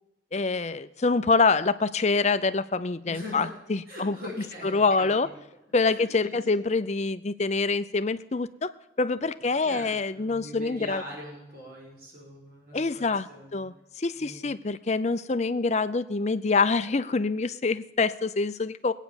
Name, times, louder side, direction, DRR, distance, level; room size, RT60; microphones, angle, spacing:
voice 1, 0.3-4.2 4.7-5.3 5.7-8.7 9.0-11.0 12.7-13.3 13.5-18.9, left 4 dB, 35° left, 13 dB, 0.5 m, -26 dB
voice 2, 3.1-3.5 3.9-5.3 5.8-6.6 9.6-13.7 14.1-14.5, left 1 dB, 50° right, -3 dB, 5.4 m, -42 dB
19.5 x 9.2 x 7.1 m, 0.97 s
head